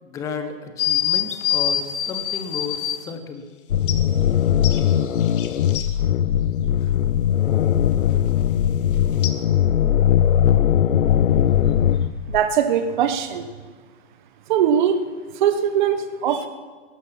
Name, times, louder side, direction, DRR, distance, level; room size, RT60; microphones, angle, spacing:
voice 1, 0.0-3.5, left 5 dB, 10° left, 8 dB, 0.6 m, -33 dB
sound 1, 0.8-3.0 3.9-4.0 4.6-5.9 9.2-9.3, left 10 dB, 45° left, 1.3 m, -25 dB
sound 2, 3.7-12.5, left 10 dB, 75° left, 0.7 m, -19 dB
voice 2, 12.3-13.5 14.5-15.0 15.4-16.5, right 8 dB, 40° right, 9 dB, 1.1 m, -20 dB
20.5 x 11.5 x 5.8 m, 1.5 s
hypercardioid pair, 150°, 37 cm